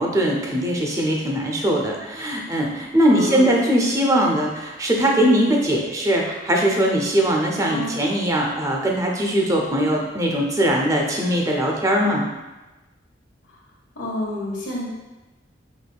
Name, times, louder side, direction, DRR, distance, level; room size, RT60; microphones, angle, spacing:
voice 1, 0.0-12.2, right 1 dB, 15° right, -1 dB, 0.5 m, -20 dB
voice 2, 3.1-3.5 7.7-7.9 13.9-14.8, left 1 dB, 85° left, -5 dB, 1.4 m, -28 dB
5.2 x 3.1 x 2.3 m, 1.1 s
head